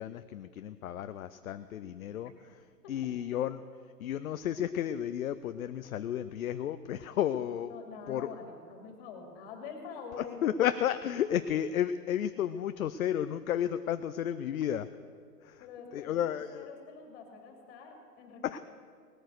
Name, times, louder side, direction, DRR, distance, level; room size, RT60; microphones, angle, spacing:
voice 1, 0.0-2.3 2.9-3.6 4.0-7.7 8.1-8.3 10.4-14.9 15.4-15.6 15.9-16.7 18.4-18.6, left 10 dB, 60° left, 11 dB, 0.6 m, -32 dB
voice 2, 7.7-10.6 15.6-18.6, left 5 dB, 35° left, 3 dB, 2.9 m, -46 dB
19.0 x 9.0 x 6.5 m, 2.1 s
hypercardioid pair, 130°, 48 cm